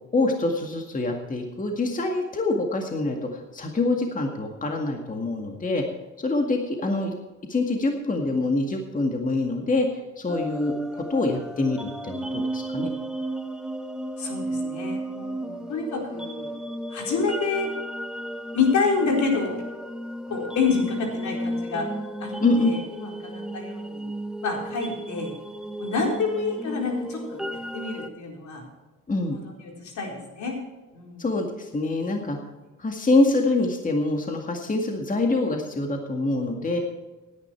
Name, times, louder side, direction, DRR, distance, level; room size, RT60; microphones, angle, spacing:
voice 1, 0.1-5.8 6.2-7.1 7.5-12.9 22.4-22.7 29.1-29.4 31.2-32.4 32.8-36.8, left 2 dB, 25° left, 2 dB, 2.0 m, -25 dB
sound 1, 10.3-28.1, right 1 dB, ahead, 0.9 m, -34 dB
voice 2, 14.2-16.6 16.9-17.7 18.5-19.6 20.3-21.9 22.2-24.1 24.4-25.3 25.8-28.6 29.3-30.6 30.9-31.2, left 4 dB, 70° left, 1 dB, 4.4 m, -28 dB
17.0 x 10.0 x 4.6 m, 1.2 s
cardioid pair, 90°, 30 cm